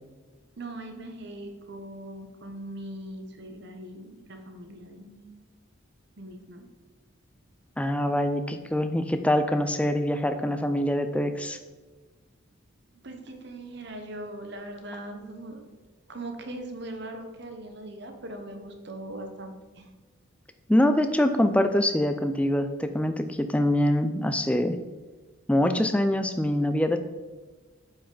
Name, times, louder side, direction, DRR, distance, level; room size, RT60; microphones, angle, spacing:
voice 1, 0.6-5.3 6.2-6.7 12.9-15.7 16.1-19.9, right 1 dB, 55° right, 5 dB, 0.9 m, -40 dB
voice 2, 7.8-11.6 20.7-24.8 25.5-27.0, left 1 dB, 5° left, 8 dB, 0.4 m, -24 dB
8.2 x 5.4 x 3.9 m, 1.3 s
head